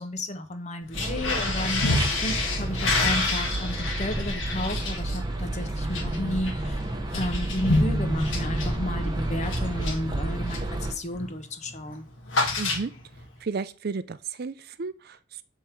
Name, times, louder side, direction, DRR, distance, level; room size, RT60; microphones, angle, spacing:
voice 1, 0.0-1.8 2.2-12.1, left 1 dB, 35° left, 8 dB, 0.8 m, -32 dB
sound 1, 0.8-10.8 11.1-11.4 11.7-13.2, left 2 dB, 80° left, 1.5 m, -29 dB
sound 2, 0.9-10.9, right 1 dB, 20° right, 0.9 m, -31 dB
voice 2, 12.6-12.9 13.4-15.4, right 4 dB, 50° right, 14 dB, 0.5 m, -33 dB
7.3 x 3.6 x 4.4 m, 0.38 s
head